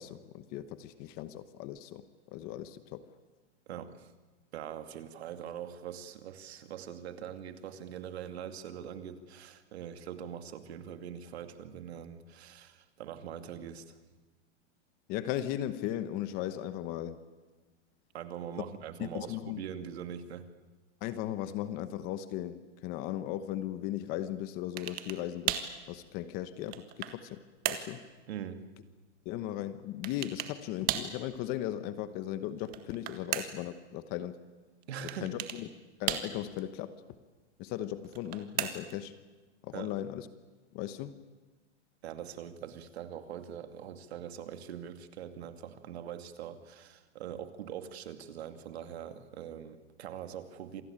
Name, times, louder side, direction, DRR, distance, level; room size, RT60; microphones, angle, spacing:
voice 1, 0.0-3.1 15.1-17.2 19.0-19.6 21.0-25.6 25.9-28.0 29.2-34.4 35.2-35.7 36.0-37.0 37.6-39.1 39.6-40.3 40.7-41.2, left 12 dB, 25° left, 13 dB, 1.0 m, -37 dB
voice 2, 3.7-4.1 4.5-14.0 18.1-20.5 28.3-28.6 34.9-35.4 39.7-40.0 42.0-50.8, right 9 dB, 60° right, 8 dB, 2.5 m, -43 dB
sound 1, 24.8-25.2 25.5-25.8 26.4-27.2 27.6-27.9 30.0-30.6 30.9-31.2 32.6-33.7 35.1-35.6 36.1-36.6 38.0-39.0, right 12 dB, 25° right, 1.6 m, -35 dB
27.0 x 19.0 x 8.8 m, 1.2 s
hypercardioid pair, 155°, 35 cm